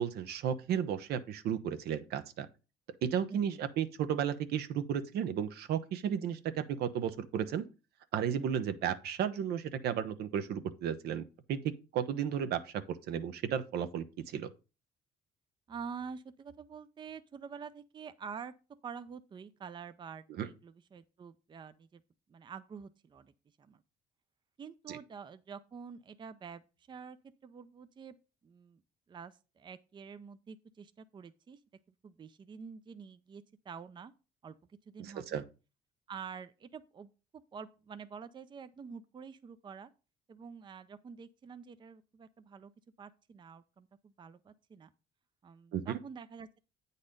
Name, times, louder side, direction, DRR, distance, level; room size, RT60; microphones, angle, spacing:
voice 1, 0.0-2.5 3.0-7.6 8.1-11.2 11.5-14.5 20.3-20.5 24.9-25.0 35.0-35.4 45.7-46.0, right 8 dB, 70° right, 0.8 m, -34 dB
voice 2, 3.3-3.6 15.7-18.5 18.8-22.0 22.3-23.3 23.6-23.8 24.6-26.6 26.9-27.2 27.4-28.2 28.4-28.8 29.1-31.6 32.0-34.1 34.4-34.6 34.9-35.4 36.1-39.9 40.3-42.7 43.0-44.9 45.4-46.6, right 6 dB, 25° right, 0.5 m, -47 dB
8.5 x 4.1 x 5.1 m
cardioid pair, 110°, 17 cm